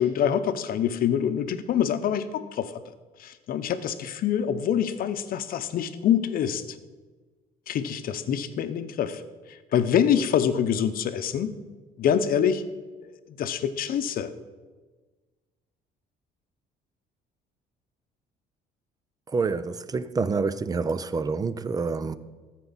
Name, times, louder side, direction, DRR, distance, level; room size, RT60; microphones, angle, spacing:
voice 1, 0.0-2.8 3.2-6.8 7.7-9.2 9.5-11.5 12.0-12.6 13.0-14.3, left 9 dB, 60° left, 0.8 m, -25 dB
voice 2, 19.3-22.2, right 4 dB, 20° right, 0.5 m, -27 dB
13.5 x 4.6 x 7.2 m
cardioid pair, 110°, 17 cm